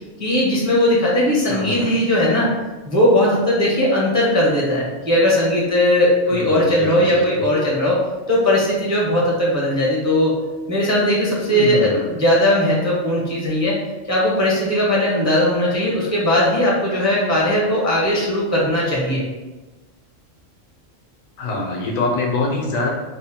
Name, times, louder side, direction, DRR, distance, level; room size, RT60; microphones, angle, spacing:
voice 1, 0.2-2.5 2.9-8.0 8.3-10.4 10.7-13.8 14.1-19.2, left 1 dB, 20° right, -5 dB, 0.4 m, -18 dB
voice 2, 1.5-2.0 6.3-7.4 11.5-12.1 21.4-22.9, left 3 dB, 85° left, -1 dB, 1.2 m, -25 dB
3.5 x 2.1 x 4.2 m, 1.2 s
omnidirectional pair, 1.4 m